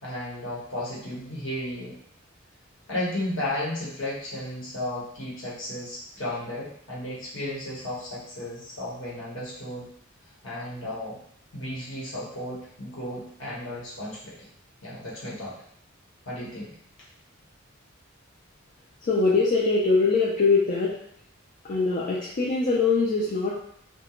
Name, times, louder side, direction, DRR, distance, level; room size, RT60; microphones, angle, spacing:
voice 1, 0.0-2.0 2.9-9.9 10.4-11.2 11.5-14.5 14.8-15.5 16.2-16.7, left 1 dB, 65° left, -7 dB, 1.1 m, -34 dB
voice 2, 19.0-21.0 21.6-23.5, left 4 dB, 45° left, -5 dB, 0.4 m, -22 dB
2.4 x 2.2 x 2.9 m, 0.68 s
head